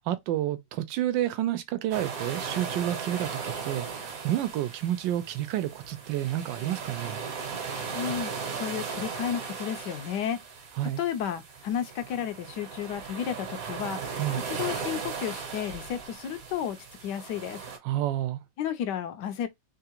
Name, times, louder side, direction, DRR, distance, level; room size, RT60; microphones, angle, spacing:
voice 1, 0.0-7.5 10.8-11.0 14.2-14.4 17.8-18.4, right 13 dB, 80° right, 1.3 m, -30 dB
sound 1, 1.9-17.8, right 5 dB, 55° right, 1.3 m, -37 dB
voice 2, 7.9-10.4 10.8-14.2 14.5-17.6 18.6-19.5, left 9 dB, 75° left, 1.1 m, -32 dB
3.6 x 2.4 x 2.8 m
omnidirectional pair, 2.0 m